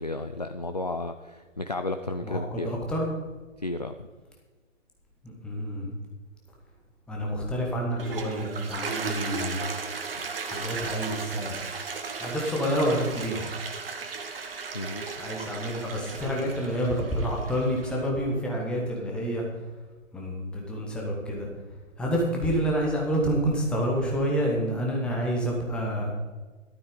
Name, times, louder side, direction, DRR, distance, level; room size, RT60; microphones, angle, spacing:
voice 1, 0.0-2.8 3.6-4.1 14.7-15.1, left 2 dB, 35° left, 8 dB, 0.4 m, -33 dB
voice 2, 2.2-3.1 5.2-5.9 7.1-9.6 10.5-11.6 12.2-13.4 15.2-19.4 20.1-21.5 22.0-26.1, equal, ahead, -2 dB, 1.0 m, -28 dB
Toilet flush, 7.8-18.1, right 5 dB, 45° right, 1.4 m, -36 dB
13.5 x 12.0 x 3.9 m, 1.3 s
figure-of-eight pair, 140°, 39 cm